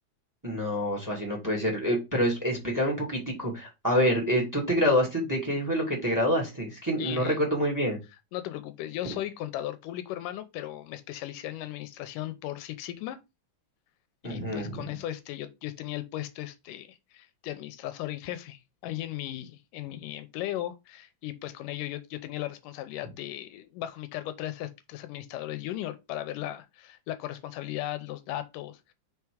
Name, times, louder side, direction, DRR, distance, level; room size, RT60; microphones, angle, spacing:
voice 1, 0.4-8.0 9.0-9.1 14.2-14.9, equal, 5° right, 1.9 m, -27 dB
voice 2, 7.0-7.4 8.3-13.2 14.2-28.9, left 13 dB, 85° left, 2.2 m, -37 dB
5.0 x 4.7 x 4.9 m
omnidirectional pair, 3.8 m